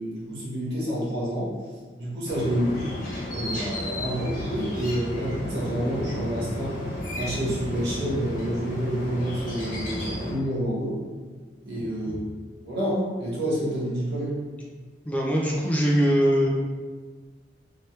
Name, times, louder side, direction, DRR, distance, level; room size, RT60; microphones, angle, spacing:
voice 1, 0.0-1.5 2.0-2.9 3.3-6.8 7.1-11.0 11.6-12.2 12.6-14.3, equal, 70° right, -8 dB, 1.4 m, -28 dB
sound 1, 2.2-10.3, left 1 dB, 45° left, 1.1 m, -33 dB
voice 2, 11.8-12.2 15.1-16.5, equal, 10° left, -3 dB, 0.5 m, -23 dB
3.2 x 3.2 x 2.9 m, 1.4 s
head